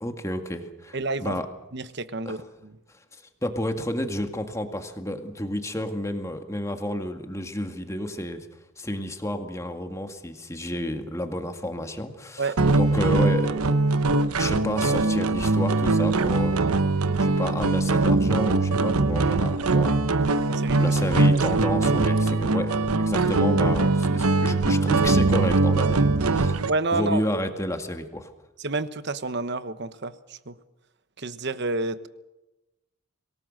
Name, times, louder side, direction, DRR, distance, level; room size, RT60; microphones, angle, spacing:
voice 1, 0.0-1.5 2.3-2.4 3.4-8.5 8.8-12.5 12.8-14.0 14.4-16.6 17.2-20.5 20.8-26.6 26.9-28.3, left 1 dB, 15° left, 6 dB, 1.9 m, -31 dB
voice 2, 0.9-1.4 1.7-2.7 12.4-12.6 20.5-21.0 21.3-21.4 26.7-27.2 28.6-30.6 31.2-32.1, right 3 dB, 50° right, 13 dB, 1.1 m, -29 dB
sound 1, 12.6-26.7, right 3 dB, 85° right, 1.0 m, -22 dB
26.0 x 18.5 x 6.5 m, 1.0 s
head